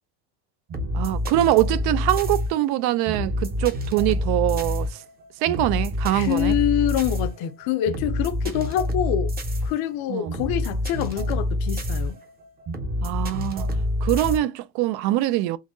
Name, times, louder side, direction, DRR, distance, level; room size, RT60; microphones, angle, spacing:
sound 1, 0.7-14.4, left 1 dB, 25° right, 0.7 m, -27 dB
voice 1, 0.9-5.0 5.4-6.5 10.1-10.4 13.0-13.7 14.0-15.6, right 15 dB, 65° right, 0.5 m, -23 dB
voice 2, 6.1-9.3 9.6-12.2, left 11 dB, 60° left, 0.6 m, -25 dB
3.9 x 3.0 x 2.6 m
cardioid pair, 170°, 41 cm